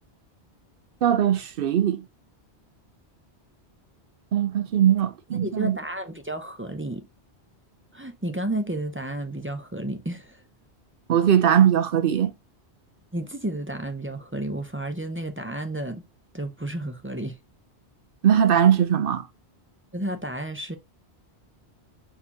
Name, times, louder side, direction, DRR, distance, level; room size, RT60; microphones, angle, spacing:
voice 1, 1.0-2.1 4.3-5.8 11.1-12.3 18.2-19.3, right 9 dB, 60° right, 0.7 m, -20 dB
voice 2, 5.3-7.0 7.9-10.4 13.1-16.0 16.3-17.4 19.9-20.8, right 1 dB, 20° right, 0.4 m, -31 dB
4.4 x 4.3 x 2.7 m
omnidirectional pair, 1.1 m